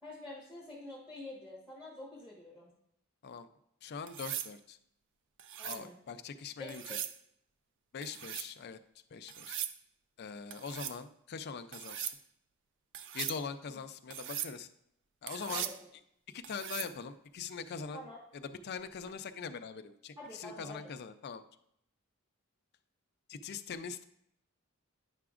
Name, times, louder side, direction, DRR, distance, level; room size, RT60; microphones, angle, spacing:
voice 1, 0.0-2.7 5.6-6.0 6.6-7.0 13.7-13.8 15.5-15.7 17.9-18.2 20.2-20.8, left 2 dB, 5° right, -5 dB, 1.3 m, -47 dB
voice 2, 3.8-4.8 5.6-7.0 7.9-8.8 9.1-9.6 10.2-12.2 13.1-14.7 15.2-15.7 16.3-18.1 18.3-21.4 23.3-24.0, left 6 dB, 50° left, 9 dB, 0.4 m, -42 dB
sound 1, 4.1-4.5 5.4-5.8 6.7-7.2 8.0-8.5 9.3-9.8 10.5-11.0 11.7-12.2 12.9-13.4 14.1-14.5 15.3-15.8 16.4-16.9 18.9-19.1, right 10 dB, 60° right, 0.4 m, -40 dB
9.4 x 5.9 x 2.4 m, 0.74 s
head